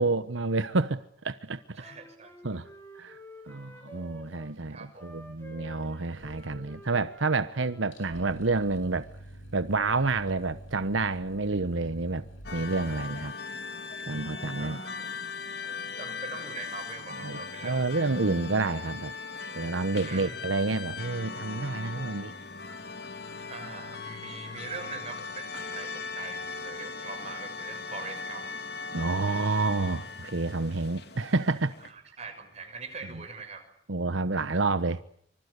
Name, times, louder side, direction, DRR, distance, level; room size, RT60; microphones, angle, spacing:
voice 1, 0.0-1.8 2.4-2.7 2.9-3.2 3.5-9.1 9.5-12.3 12.5-13.4 14.1-14.8 17.2-19.1 19.5-22.3 28.9-31.8 33.9-35.2, right 3 dB, 85° right, 1.1 m, -29 dB
Wind instrument woodwind instrument, 1.5-4.5 4.9-8.3, right 1 dB, 10° left, 6.1 m, -50 dB
voice 2, 1.8-2.3 4.7-5.1 14.6-15.1 16.0-17.9 20.1-20.4 21.8-22.1 23.5-28.5 31.9-33.7, right 4 dB, 35° right, 6.3 m, -43 dB
sound 1, 6.2-7.2 7.4-7.5 7.8-13.0, right 1 dB, 85° left, 8.0 m, -47 dB
sound 2, 12.4-31.9, left 4 dB, 55° left, 2.6 m, -39 dB
25.5 x 25.5 x 8.3 m
head